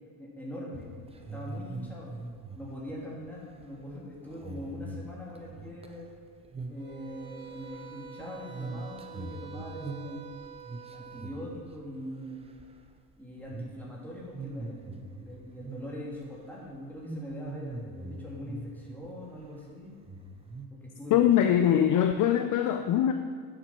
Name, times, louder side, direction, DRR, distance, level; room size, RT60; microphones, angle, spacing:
voice 1, 0.2-2.1 2.6-6.1 6.7-10.3 10.9-12.4 13.2-20.0 20.7-21.3 21.5-21.6, equal, 5° left, -5 dB, 2.9 m, -42 dB
Creepy singing, 0.7-6.2 6.4-6.9 7.2-12.1 12.4-12.9 13.4-13.8 14.2-16.2 16.5-16.7 17.0-19.1 19.4-19.5 20.0-20.7, right 2 dB, 10° right, 0.7 m, -42 dB
sound 1, 6.8-11.4, right 7 dB, 30° right, 2.2 m, -47 dB
voice 2, 21.1-23.1, left 10 dB, 40° left, 7 dB, 0.6 m, -22 dB
11.0 x 7.6 x 4.5 m, 2.2 s
supercardioid pair, 120°, 49 cm